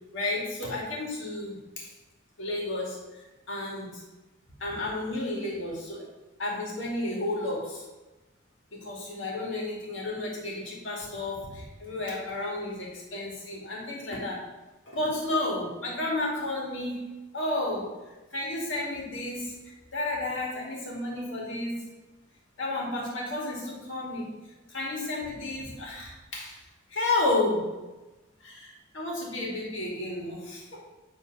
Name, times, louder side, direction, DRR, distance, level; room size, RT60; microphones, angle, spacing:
voice 1, 0.1-1.9 2.4-4.0 4.6-6.1 6.4-7.8 8.7-14.4 14.9-17.0 17.3-17.9 18.3-21.8 22.6-24.3 24.7-26.6 26.9-27.7 28.4-30.8, left 2 dB, 80° left, -3 dB, 2.1 m, -32 dB
7.9 x 3.6 x 5.3 m, 1.1 s
head